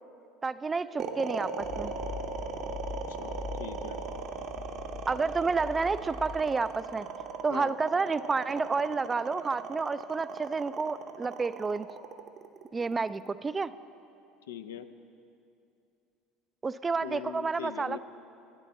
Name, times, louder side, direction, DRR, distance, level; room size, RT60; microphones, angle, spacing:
voice 1, 0.4-1.9 5.1-7.1 7.4-11.9 12.7-13.7 16.6-18.0, right 4 dB, 25° right, 15 dB, 0.3 m, -30 dB
sound 1, 1.0-13.3, right 5 dB, 55° right, 0.8 m, -38 dB
sound 2, 1.6-7.3, left 4 dB, 55° left, 1.3 m, -43 dB
voice 2, 3.1-4.0 7.5-7.8 14.5-14.9 17.0-18.0, left 10 dB, 80° left, 9 dB, 0.4 m, -41 dB
13.0 x 9.9 x 4.2 m, 2.6 s
hypercardioid pair, 70°, 0 cm